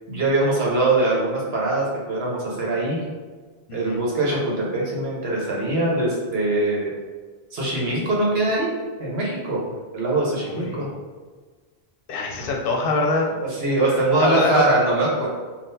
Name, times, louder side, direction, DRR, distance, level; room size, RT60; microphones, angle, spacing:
voice 1, 0.1-3.0 3.7-6.9 7.5-8.7 9.0-9.6 9.9-10.9 13.6-15.3, right 2 dB, 75° right, -4 dB, 1.1 m, -22 dB
voice 2, 3.7-4.0 10.5-10.8 12.1-13.3 14.2-14.6, left 3 dB, 65° left, 0 dB, 0.8 m, -24 dB
3.6 x 2.4 x 2.6 m, 1.4 s
omnidirectional pair, 1.1 m